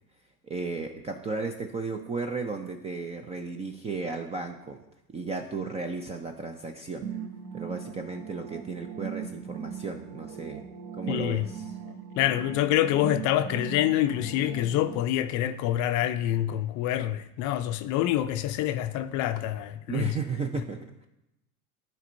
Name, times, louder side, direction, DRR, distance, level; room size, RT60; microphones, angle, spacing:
voice 1, 0.4-4.8 5.1-7.1 7.5-10.6 11.0-11.7 19.9-21.1, right 4 dB, 15° right, 0.3 m, -34 dB
sound 1, 7.0-15.0, right 7 dB, 55° right, 0.9 m, -39 dB
voice 2, 11.1-11.5 12.2-20.1, left 13 dB, 40° left, 0.5 m, -26 dB
12.5 x 4.4 x 2.6 m
hypercardioid pair, 95°, 46 cm